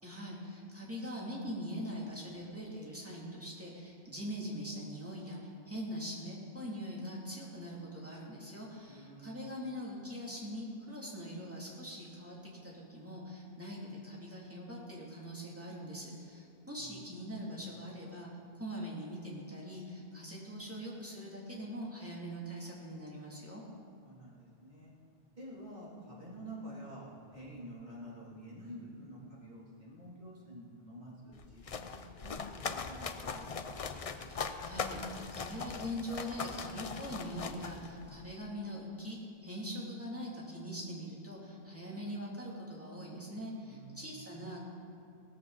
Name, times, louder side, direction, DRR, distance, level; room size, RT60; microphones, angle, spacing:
voice 1, 0.0-18.3 18.6-23.6 34.3-44.6, equal, 15° right, -4 dB, 2.7 m, -42 dB
voice 2, 8.9-9.6 16.8-17.5 24.0-24.9 25.4-31.9 32.2-33.8 43.6-44.2, right 1 dB, 45° right, -6 dB, 3.3 m, -49 dB
sound 1, 31.3-38.3, left 5 dB, 40° left, 0.6 m, -40 dB
17.5 x 13.5 x 4.1 m, 2.4 s
omnidirectional pair, 1.0 m